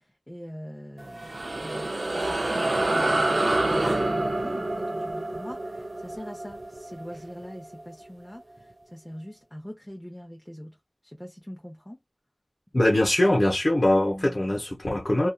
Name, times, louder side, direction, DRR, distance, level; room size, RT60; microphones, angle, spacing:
voice 1, 0.0-10.7 11.0-12.0 14.0-14.6, equal, 10° left, 0.7 m, -42 dB
sound 1, 1.0-7.8, right 2 dB, 70° right, 0.4 m, -27 dB
voice 2, 12.7-15.3, left 1 dB, 60° left, 0.7 m, -22 dB
2.7 x 2.3 x 2.3 m
wide cardioid pair, 40°, 0 cm